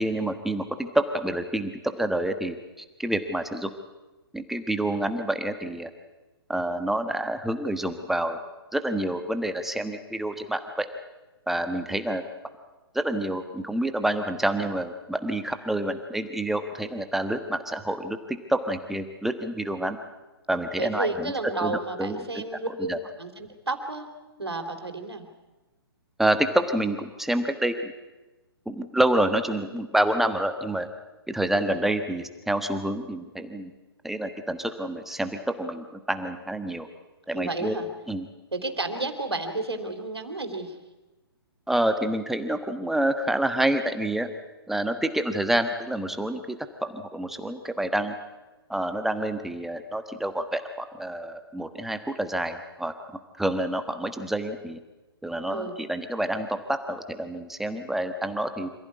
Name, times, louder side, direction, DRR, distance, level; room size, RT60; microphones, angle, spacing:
voice 1, 0.0-3.7 4.3-5.9 6.5-8.4 8.7-10.9 11.5-12.2 12.9-20.0 20.5-21.3 21.6-22.4 22.8-23.0 26.2-27.9 28.6-30.9 31.3-33.7 34.0-36.9 37.3-37.8 38.1-38.3 41.7-44.3 44.7-48.1 48.7-54.8 55.2-58.7, right 1 dB, ahead, 8 dB, 1.3 m, -28 dB
voice 2, 20.8-24.1 24.4-25.3 31.5-31.9 37.3-37.9 38.5-40.7 55.5-55.8, right 2 dB, 80° right, 6 dB, 3.5 m, -32 dB
26.0 x 16.0 x 9.6 m, 1.1 s
figure-of-eight pair, 125°, 13 cm